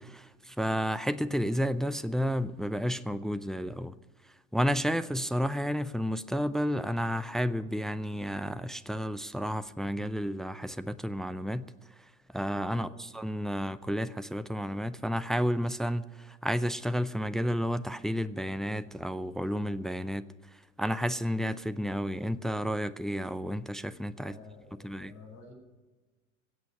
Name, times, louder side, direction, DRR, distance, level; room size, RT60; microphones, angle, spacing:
voice 1, 0.0-3.9 4.5-11.7 12.3-12.9 13.1-20.2 20.8-24.3 24.8-25.1, equal, ahead, 0.4 m, -31 dB
voice 2, 12.7-13.0 24.2-25.5, left 4 dB, 50° left, 5.3 m, -51 dB
15.5 x 8.2 x 9.6 m
figure-of-eight pair, 65°, 37 cm